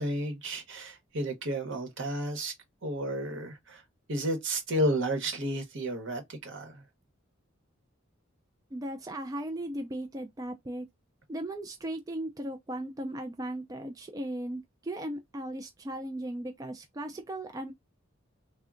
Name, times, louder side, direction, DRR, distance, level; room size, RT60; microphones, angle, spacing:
voice 1, 0.0-2.5 2.8-3.8 4.1-6.8, right 1 dB, 65° right, 1.1 m, -32 dB
voice 2, 8.7-10.9 11.3-17.7, right 1 dB, 20° right, 0.3 m, -37 dB
3.6 x 2.1 x 2.4 m
head